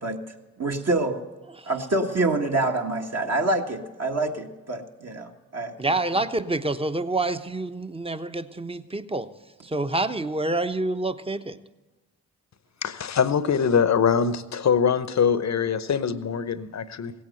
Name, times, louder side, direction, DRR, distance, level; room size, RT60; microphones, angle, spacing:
voice 1, 0.6-1.3 1.7-5.7, right 2 dB, 45° right, 1 dB, 1.7 m, -26 dB
voice 2, 5.8-9.3 9.6-11.6, right 2 dB, 15° right, 10 dB, 1.0 m, -27 dB
voice 3, 12.8-17.1, left 7 dB, 50° left, 14 dB, 0.9 m, -23 dB
17.0 x 8.7 x 7.8 m, 1.1 s
hypercardioid pair, 40°, 36 cm